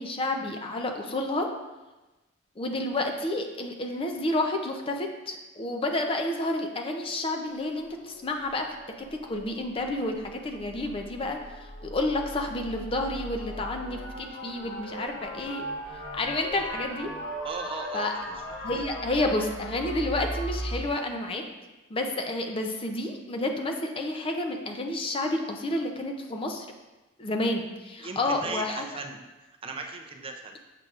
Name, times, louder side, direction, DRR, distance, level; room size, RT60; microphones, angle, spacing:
voice 1, 0.0-1.5 2.6-8.7 9.0-15.6 16.1-17.1 17.9-18.1 18.6-21.4 21.9-26.7 27.2-28.8, left 2 dB, 25° left, 3 dB, 0.5 m, -30 dB
sound 1, 7.5-20.8, equal, 50° left, 1.3 m, -39 dB
voice 2, 17.4-18.3 28.0-29.2 29.6-30.6, right 3 dB, 25° right, 3 dB, 0.4 m, -37 dB
6.6 x 6.1 x 2.4 m, 1.1 s
head